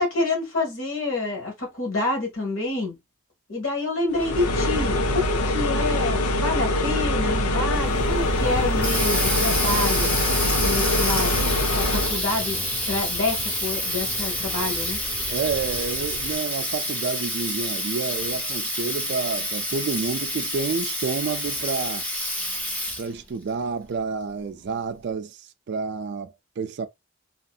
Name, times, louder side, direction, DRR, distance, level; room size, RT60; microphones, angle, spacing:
voice 1, 0.0-3.0 3.5-10.1 10.6-15.0, left 2 dB, 60° left, 1.4 m, -28 dB
sound 1, 4.1-12.2, left 1 dB, 85° left, 0.6 m, -24 dB
sound 2, 7.7-16.4, right 1 dB, 25° right, 0.7 m, -38 dB
Water tap faucet, 8.5-23.2, equal, 5° left, 0.5 m, -28 dB
voice 2, 15.3-22.0 23.0-26.9, right 5 dB, 50° right, 0.3 m, -29 dB
2.9 x 2.7 x 2.3 m
head